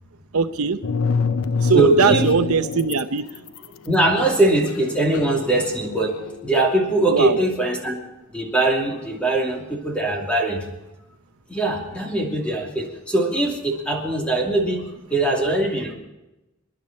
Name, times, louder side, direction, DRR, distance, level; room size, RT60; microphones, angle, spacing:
voice 1, 0.3-0.8 1.6-3.2 7.1-7.4, right 5 dB, 85° right, 9 dB, 0.8 m, -20 dB
sound 1, 0.8-3.0 3.3-6.7, left 4 dB, 80° left, 0.7 m, -26 dB
voice 2, 1.7-2.3 3.8-6.2 6.4-8.0 8.3-10.6 11.5-15.9, right 2 dB, 5° left, -1 dB, 2.8 m, -21 dB
27.5 x 11.0 x 4.3 m, 0.98 s
head